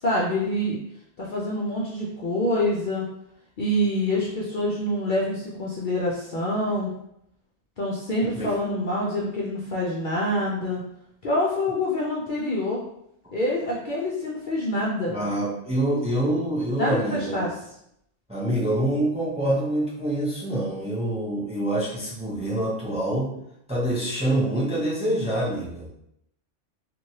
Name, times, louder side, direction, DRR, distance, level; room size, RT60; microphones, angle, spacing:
voice 1, 0.0-0.8 1.2-3.0 3.6-6.9 7.8-10.8 11.2-12.8 13.3-15.1 16.8-17.5, left 1 dB, 55° left, -5 dB, 0.6 m, -26 dB
voice 2, 15.1-17.5 18.3-23.3 23.7-25.9, right 1 dB, 5° right, -6 dB, 0.6 m, -26 dB
3.0 x 2.5 x 2.7 m, 0.77 s
omnidirectional pair, 1.2 m